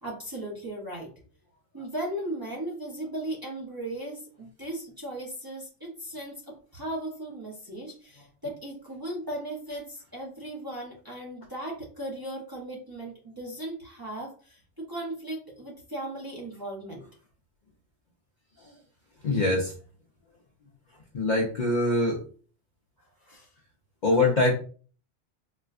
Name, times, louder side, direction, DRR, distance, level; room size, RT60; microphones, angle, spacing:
voice 1, 0.0-1.1 1.7-17.1 23.0-23.5 24.1-24.3, right 1 dB, 20° right, -4 dB, 0.7 m, -37 dB
voice 2, 19.2-19.7 21.1-22.2 24.0-24.5, left 2 dB, 50° left, -2 dB, 0.6 m, -23 dB
4.1 x 2.2 x 2.4 m, 0.41 s
omnidirectional pair, 1.2 m